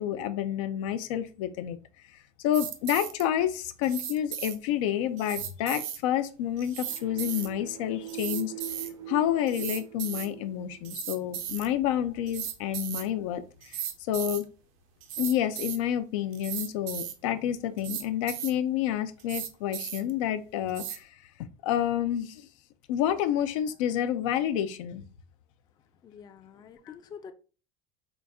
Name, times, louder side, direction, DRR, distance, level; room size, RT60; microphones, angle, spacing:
voice 1, 0.0-1.8 2.4-8.5 9.1-13.8 14.1-14.5 15.2-21.1 21.6-22.5 22.9-25.0, left 10 dB, 85° left, 0.5 m, -29 dB
sound 1, 2.5-3.2 3.8-4.6 5.2-6.0 6.6-7.5 8.1-8.9 9.5-10.3 10.8-11.7 12.3-13.1 13.6-14.4 15.0-15.8 16.3-17.1 17.8-18.5 19.2-20.1 20.7-21.0, right 10 dB, 80° right, 0.7 m, -36 dB
sound 2, 6.9-11.4, right 12 dB, 30° right, 0.5 m, -42 dB
voice 2, 26.0-27.3, left 7 dB, 25° left, 0.4 m, -46 dB
4.0 x 2.4 x 3.4 m
supercardioid pair, 130°, 16 cm